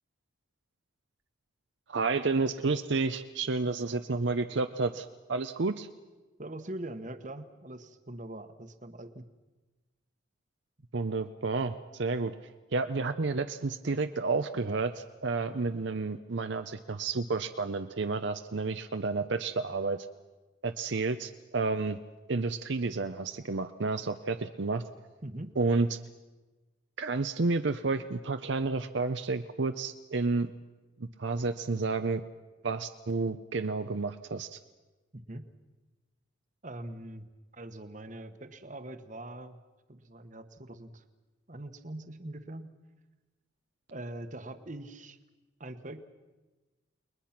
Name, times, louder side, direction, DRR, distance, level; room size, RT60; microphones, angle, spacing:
voice 1, 1.9-5.9 10.9-12.3 12.7-20.1 20.6-22.0 22.3-24.8 25.6-25.9 27.0-30.5 31.2-32.2 32.6-34.6, right 3 dB, 65° right, 8 dB, 0.7 m, -30 dB
voice 2, 6.4-9.3 25.2-25.5 35.1-35.5 36.6-37.3 37.5-39.6 39.9-41.0 41.5-42.7 43.9-45.2 45.6-46.0, right 1 dB, 40° right, 9 dB, 1.2 m, -42 dB
29.5 x 21.0 x 5.9 m, 1.2 s
head